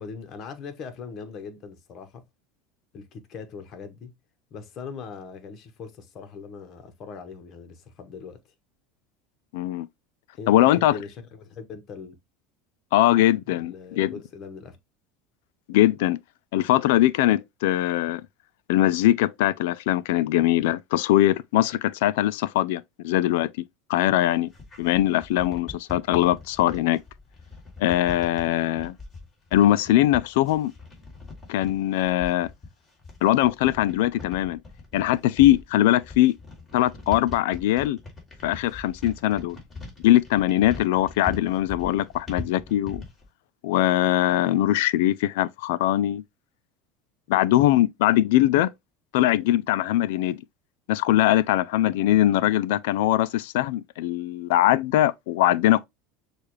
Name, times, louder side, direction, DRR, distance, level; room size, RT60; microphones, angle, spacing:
voice 1, 0.0-2.2 2.9-4.1 4.5-8.4 10.4-12.2 13.5-14.8, left 5 dB, 45° left, 1.0 m, -40 dB
voice 2, 9.5-9.9 10.5-11.0 12.9-14.1 15.7-16.2 16.5-18.2 18.7-23.6 23.9-24.5 24.8-27.0 27.8-29.0 29.5-30.7 31.5-32.5 33.2-34.6 34.9-36.3 36.7-38.0 38.4-39.6 40.0-43.0 43.6-46.2 47.3-48.7 49.1-50.4 50.9-55.8, left 14 dB, 80° left, 0.3 m, -21 dB
sound 1, 24.1-43.3, left 3 dB, 20° left, 2.6 m, -41 dB
6.5 x 2.4 x 3.1 m
supercardioid pair, 125°, 0 cm